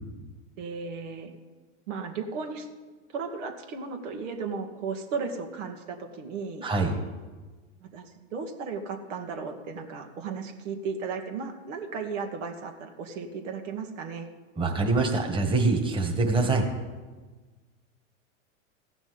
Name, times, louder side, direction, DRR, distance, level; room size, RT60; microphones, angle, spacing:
voice 1, 0.6-1.3 1.9-2.7 3.1-6.7 7.8-14.3, right 5 dB, 75° right, 4 dB, 2.2 m, -35 dB
voice 2, 6.6-6.9 14.6-16.7, right 3 dB, 15° right, 2 dB, 1.9 m, -24 dB
15.5 x 6.1 x 9.7 m, 1.3 s
hypercardioid pair, 125°, 38 cm